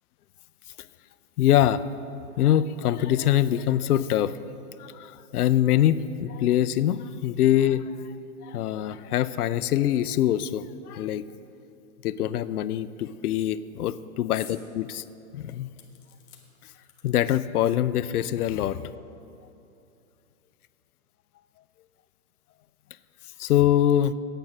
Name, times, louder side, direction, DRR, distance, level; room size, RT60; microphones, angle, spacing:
voice 1, 1.4-1.8 2.4-4.4 4.8-7.9 8.4-11.2 12.0-15.0 15.3-15.7 17.0-18.8 23.4-24.1, left 11 dB, 90° left, 15 dB, 0.5 m, -24 dB
sound 1, 14.3-14.6 15.0-15.1 15.8-17.4 18.3-18.4 18.7-18.8, left 9 dB, 25° left, 0.9 m, -49 dB
8.9 x 8.7 x 5.9 m, 2.8 s
hypercardioid pair, 150°, 43 cm